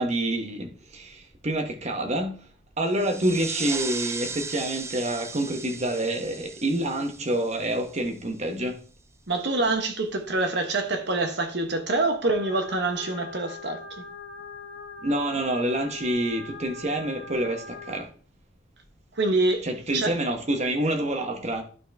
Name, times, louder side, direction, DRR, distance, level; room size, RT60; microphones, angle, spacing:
voice 1, 0.0-2.4 2.8-8.8 15.0-18.1 19.6-21.6, right 1 dB, 35° right, 1.1 m, -27 dB
sound 1, 2.9-8.2, right 4 dB, 15° right, 0.3 m, -36 dB
voice 2, 9.3-13.8 19.2-19.7 19.9-20.1, right 2 dB, 60° right, 1.2 m, -25 dB
sound 2, 12.2-18.0, left 4 dB, 70° left, 1.3 m, -41 dB
11.5 x 4.1 x 3.4 m
head